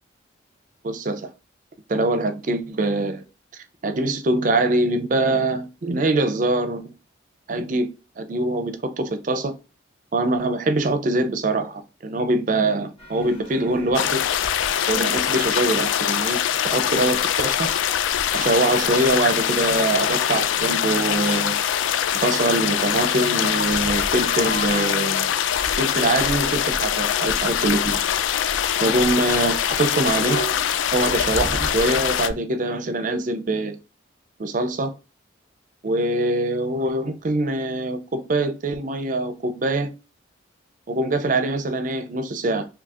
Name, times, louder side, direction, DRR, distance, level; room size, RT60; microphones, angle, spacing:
voice 1, 0.8-1.3 1.9-3.2 3.8-6.9 7.5-7.9 8.2-9.5 10.1-14.2 14.9-17.7 18.3-21.6 22.2-25.3 25.8-28.0 28.8-30.4 30.9-33.8 34.4-34.9 35.8-39.9 40.9-42.7, right 2 dB, 45° right, 0.5 m, -23 dB
sound 1, 13.0-32.3, equal, 30° left, 1.0 m, -37 dB
sound 2, 13.9-32.3, left 10 dB, 85° left, 0.3 m, -23 dB
4.2 x 2.8 x 2.4 m
head